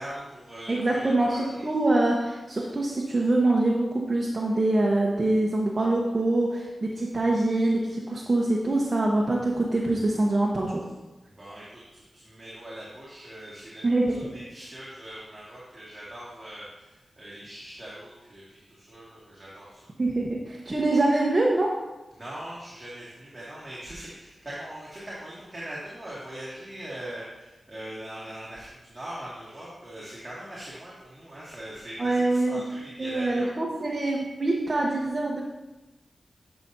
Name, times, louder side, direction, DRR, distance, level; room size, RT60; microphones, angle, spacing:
voice 1, 0.0-1.7 11.3-19.9 22.1-33.5, right 1 dB, 25° right, -9 dB, 2.3 m, -41 dB
voice 2, 0.7-10.8 13.8-14.2 20.0-21.7 32.0-32.6 33.0-35.4, right 2 dB, 40° right, -3 dB, 1.0 m, -24 dB
11.0 x 5.8 x 2.8 m, 1.1 s
wide cardioid pair, 75°, 0 cm